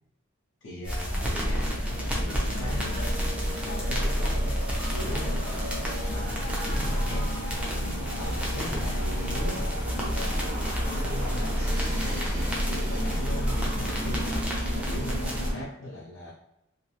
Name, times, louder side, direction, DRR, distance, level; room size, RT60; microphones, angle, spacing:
voice 1, 0.6-5.7 6.1-7.3 8.1-10.7 11.0-14.3 14.8-16.3, left 1 dB, 65° left, -5 dB, 0.6 m, -39 dB
sound 1, 0.8-15.5, equal, 5° right, 0.6 m, -29 dB
sound 2, 1.4-15.6, equal, 35° right, 1.1 m, -36 dB
sound 3, 1.9-14.8, equal, 10° left, 1.3 m, -42 dB
2.9 x 2.7 x 2.4 m, 0.86 s
head